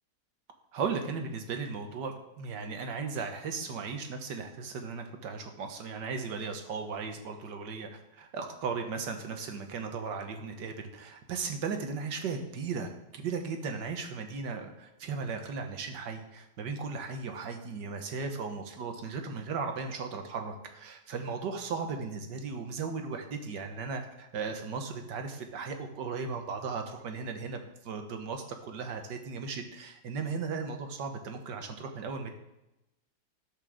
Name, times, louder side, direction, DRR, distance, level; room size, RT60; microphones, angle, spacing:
voice 1, 0.7-32.3, right 5 dB, 80° right, 5 dB, 1.8 m, -36 dB
12.5 x 5.3 x 6.3 m, 0.91 s
omnidirectional pair, 1.8 m